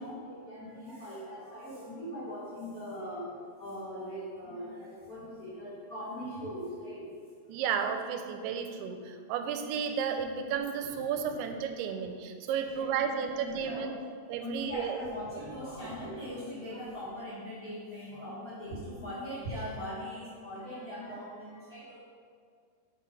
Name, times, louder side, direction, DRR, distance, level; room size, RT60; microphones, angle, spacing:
voice 1, 0.0-7.1 11.1-11.2 12.5-13.9 14.4-22.0, equal, 35° left, -10 dB, 1.4 m, -40 dB
voice 2, 7.5-14.0 14.3-15.0 15.8-15.9, right 7 dB, 85° right, 6 dB, 2.6 m, -33 dB
7.6 x 4.6 x 5.3 m, 2.1 s
omnidirectional pair, 4.5 m